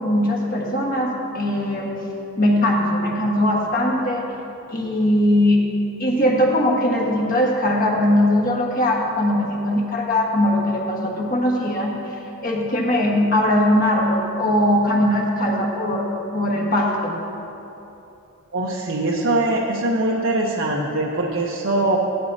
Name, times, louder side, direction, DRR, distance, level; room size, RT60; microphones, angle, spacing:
voice 1, 0.0-2.0 2.4-4.2 4.7-5.6 6.0-11.9 12.4-16.1 16.3-17.2, left 1 dB, 40° left, -1 dB, 1.4 m, -20 dB
voice 2, 18.5-22.0, right 2 dB, 55° right, -2 dB, 0.8 m, -22 dB
16.0 x 11.0 x 2.7 m, 3.0 s
head